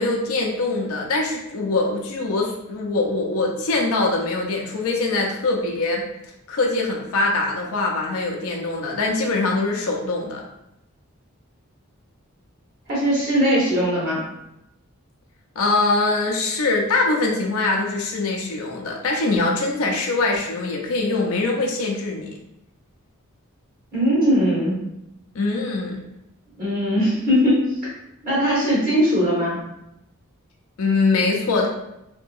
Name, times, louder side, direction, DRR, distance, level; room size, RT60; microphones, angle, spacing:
voice 1, 0.0-6.0 6.5-10.4 15.6-22.3 25.3-26.0 30.8-31.7, left 3 dB, 85° left, 0 dB, 0.5 m, -23 dB
voice 2, 12.9-14.2 23.9-24.8 26.6-27.9 28.2-29.6, equal, 45° right, -8 dB, 1.1 m, -20 dB
2.7 x 2.7 x 2.3 m, 0.86 s
head